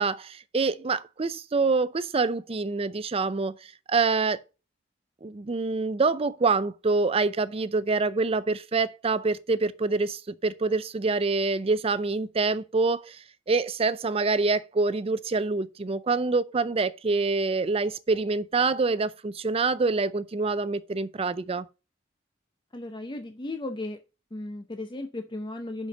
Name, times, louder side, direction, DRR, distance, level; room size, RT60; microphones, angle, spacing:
voice 1, 0.0-4.4 5.2-21.7, right 3 dB, 30° right, 0.5 m, -26 dB
voice 2, 22.7-24.0 24.3-25.9, left 2 dB, 25° left, 0.6 m, -35 dB
5.9 x 5.6 x 6.5 m
head